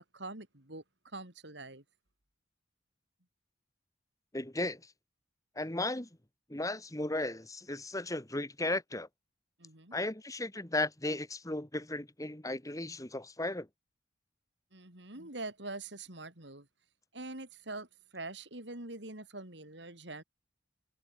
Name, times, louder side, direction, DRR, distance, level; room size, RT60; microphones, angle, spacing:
voice 1, 0.1-1.8 9.6-10.0 14.7-16.7 17.1-20.2, right 2 dB, 65° right, 5.1 m, -44 dB
voice 2, 4.3-4.9 5.6-6.1 6.5-9.1 9.9-13.7, left 2 dB, 20° left, 2.2 m, -35 dB
head